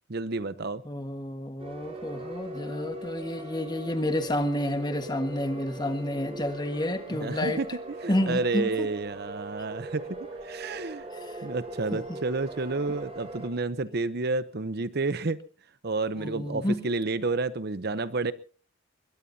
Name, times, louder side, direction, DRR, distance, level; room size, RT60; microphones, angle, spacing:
voice 1, 0.1-0.8 7.1-7.6 8.0-11.0 11.4-15.4 15.8-18.3, right 3 dB, 55° right, 14 dB, 0.8 m, -30 dB
voice 2, 0.8-7.6 8.1-8.9 11.1-11.5 11.9-12.2 16.2-16.8, left 1 dB, 20° left, 7 dB, 1.6 m, -30 dB
sound 1, 1.6-13.5, right 1 dB, 30° right, 6.1 m, -41 dB
22.0 x 21.5 x 2.8 m, 0.40 s
head